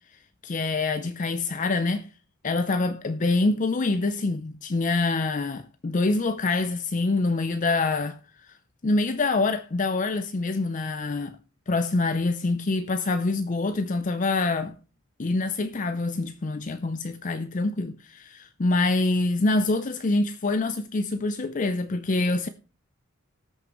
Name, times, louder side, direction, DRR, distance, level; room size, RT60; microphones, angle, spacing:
voice 1, 0.4-2.1 2.4-8.2 8.8-11.4 11.7-14.7 15.2-22.5, left 3 dB, 35° left, 0.5 m, -25 dB
19.0 x 6.6 x 3.0 m
head